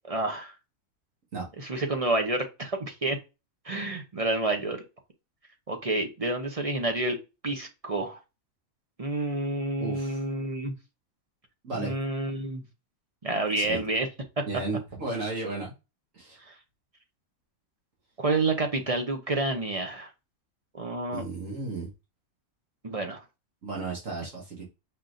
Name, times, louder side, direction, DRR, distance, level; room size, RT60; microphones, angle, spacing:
voice 1, 0.1-0.5 1.6-3.2 3.6-4.8 5.7-7.2 7.4-8.2 9.0-10.7 11.7-12.6 13.2-14.1 14.4-14.5 16.5-16.6 18.2-20.1 20.7-21.2 22.8-23.2, right 2 dB, 35° right, 0.6 m, -29 dB
voice 2, 9.8-10.2 11.6-12.0 13.6-13.8 14.5-15.7 16.1-16.4 21.1-21.9 23.6-24.6, right 3 dB, 65° right, 1.8 m, -34 dB
5.6 x 3.6 x 2.6 m
omnidirectional pair, 1.5 m